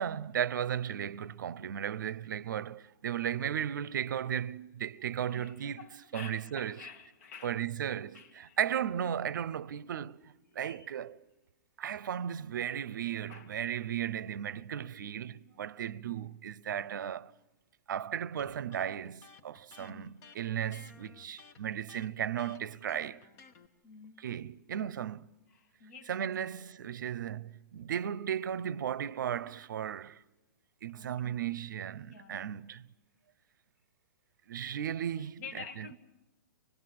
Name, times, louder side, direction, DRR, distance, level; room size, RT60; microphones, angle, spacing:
voice 1, 0.0-6.7 7.4-11.2 11.8-17.3 17.9-23.2 24.2-25.3 26.1-30.2 30.8-32.8 34.5-35.4, right 9 dB, 75° right, 0.7 m, -35 dB
voice 2, 5.1-7.6 8.1-8.6 9.9-10.0 10.6-10.9 13.3-13.6 19.8-20.2 23.8-24.3 25.5-26.3 30.9-31.7 32.1-32.5 35.2-36.0, left 6 dB, 50° left, 1.8 m, -50 dB
Electric guitar, 18.4-23.7, left 5 dB, 25° left, 1.2 m, -55 dB
25.0 x 20.5 x 7.8 m
hypercardioid pair, 160°, 10 cm